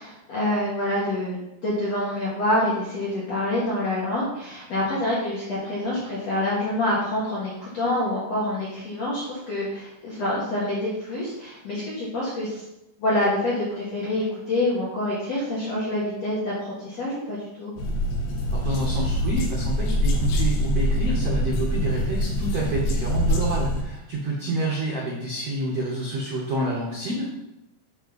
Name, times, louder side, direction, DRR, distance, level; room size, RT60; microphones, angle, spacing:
voice 1, 0.0-1.4 1.6-12.6 13.0-17.7, left 1 dB, 50° left, -7 dB, 2.2 m, -26 dB
sound 1, 17.8-23.8, equal, 85° left, 3.6 m, -24 dB
voice 2, 18.5-27.3, right 1 dB, 80° right, -3 dB, 1.3 m, -28 dB
10.0 x 5.4 x 4.1 m, 0.87 s
omnidirectional pair, 5.0 m